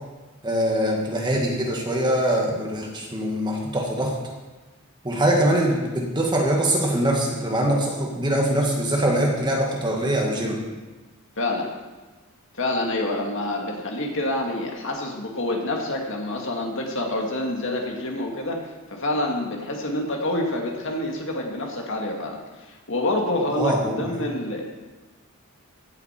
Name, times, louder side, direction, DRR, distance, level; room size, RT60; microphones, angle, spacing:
voice 1, 0.4-4.1 5.0-10.6 23.6-24.0, right 1 dB, 20° right, -1 dB, 1.9 m, -23 dB
voice 2, 11.4-11.7 12.5-24.6, left 1 dB, 60° left, 0 dB, 2.0 m, -27 dB
16.0 x 8.3 x 4.5 m, 1.2 s
head